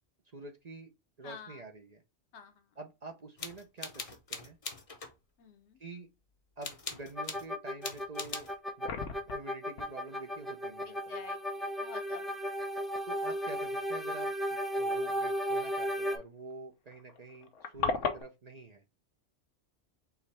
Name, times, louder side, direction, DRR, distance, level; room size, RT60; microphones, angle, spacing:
voice 1, 0.3-0.9 1.2-2.0 2.8-4.6 5.8-6.1 6.6-8.5 8.8-8.9 9.3-11.3 13.1-18.8, right 3 dB, 40° right, 0.7 m, -47 dB
voice 2, 1.2-1.6 2.3-2.7 5.4-5.8 11.1-12.4, left 6 dB, 70° left, 1.0 m, -49 dB
sound 1, 3.4-5.1 6.6-7.5 7.8-8.6, left 4 dB, 35° left, 0.7 m, -42 dB
sound 2, 7.2-16.2, equal, ahead, 0.4 m, -35 dB
sound 3, 8.2-8.3 8.5-9.5 9.8-9.9 12.3-12.5 13.4-13.5 13.7-13.8 16.2-16.3 16.5-16.6 16.9-18.2, left 5 dB, 90° left, 1.1 m, -35 dB
4.7 x 3.1 x 3.3 m
omnidirectional pair, 1.2 m